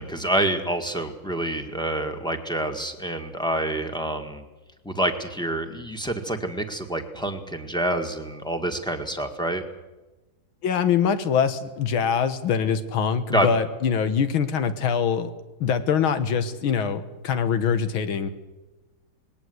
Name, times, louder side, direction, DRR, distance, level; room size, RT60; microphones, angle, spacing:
voice 1, 0.0-4.4 4.8-9.6 13.3-13.5, right 1 dB, ahead, 3 dB, 1.5 m, -27 dB
voice 2, 10.6-15.3 15.6-18.3, left 7 dB, 85° left, 10 dB, 2.1 m, -23 dB
20.5 x 17.5 x 8.0 m, 1.1 s
omnidirectional pair, 2.2 m